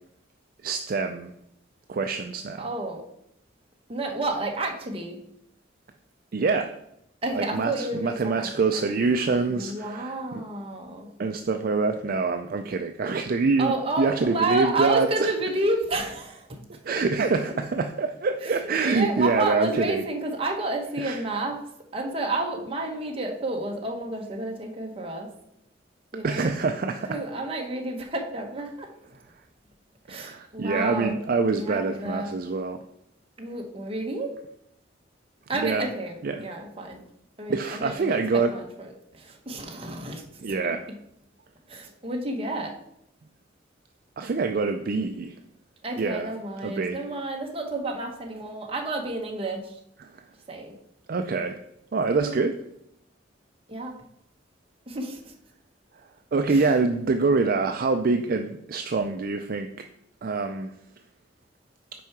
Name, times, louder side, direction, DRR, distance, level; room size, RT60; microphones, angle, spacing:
voice 1, 0.6-1.3 1.9-2.7 6.3-6.7 7.3-10.4 11.2-15.1 16.8-20.0 21.0-21.2 26.2-27.2 30.1-32.8 35.6-35.9 36.2-36.5 37.5-38.5 40.4-40.9 44.2-45.3 46.0-46.3 46.6-47.0 50.0-50.1 51.1-51.6 51.9-52.6 56.3-59.7 60.2-60.7, right 4 dB, 50° right, 6 dB, 0.4 m, -25 dB
voice 2, 2.6-3.0 3.9-5.2 7.2-8.8 9.5-11.1 13.6-16.6 16.9-17.0 18.4-21.6 21.9-25.3 26.1-26.5 27.1-28.9 30.1-31.2 31.5-32.3 33.4-34.3 35.5-37.0 37.4-40.6 41.7-42.7 45.8-49.8 50.5-50.7 52.1-52.4 53.7-53.9 54.9-55.3 56.5-56.6, right 2 dB, 30° right, 1 dB, 1.1 m, -30 dB
6.1 x 4.7 x 5.9 m, 0.77 s
head